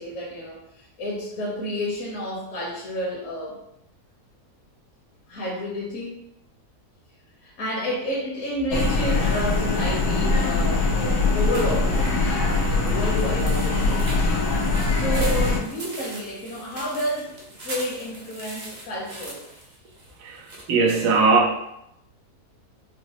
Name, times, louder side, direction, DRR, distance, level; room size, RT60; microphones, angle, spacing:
voice 1, 0.0-3.6 5.3-6.2 7.4-12.0 12.2-14.1 14.9-17.3 17.6-19.4, equal, 60° left, -5 dB, 1.1 m, -30 dB
sound 1, 8.7-15.6, left 3 dB, 80° left, 1.2 m, -22 dB
sound 2, 11.5-20.6, right 1 dB, 55° right, 0.5 m, -40 dB
voice 2, 20.2-21.6, right 4 dB, 85° right, 1 dB, 1.2 m, -20 dB
3.9 x 2.0 x 2.8 m, 0.78 s
omnidirectional pair, 1.6 m